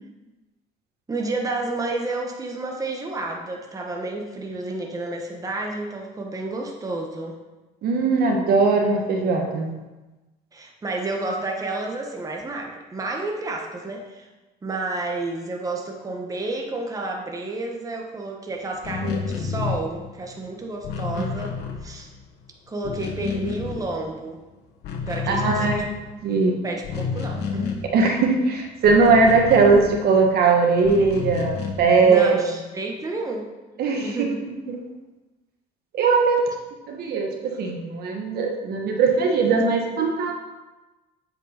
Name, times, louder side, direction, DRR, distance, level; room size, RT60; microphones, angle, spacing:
voice 1, 1.1-7.4 10.5-14.3 14.6-21.5 21.8-22.1 22.7-24.4 25.1-25.9 26.6-27.7 32.0-33.5 34.0-34.4, right 2 dB, 20° right, 1 dB, 1.3 m, -30 dB
voice 2, 7.8-9.7 25.3-25.8 26.2-26.6 27.9-32.4 33.8-34.8 35.9-36.4 36.9-40.3, right 4 dB, 70° right, 2 dB, 1.5 m, -20 dB
sound 1, 18.7-22.4 22.7-24.4 24.7-30.3 30.8-32.0, left 5 dB, 80° left, 1.3 m, -30 dB
8.0 x 5.3 x 5.9 m, 1.1 s
cardioid pair, 110°, 17 cm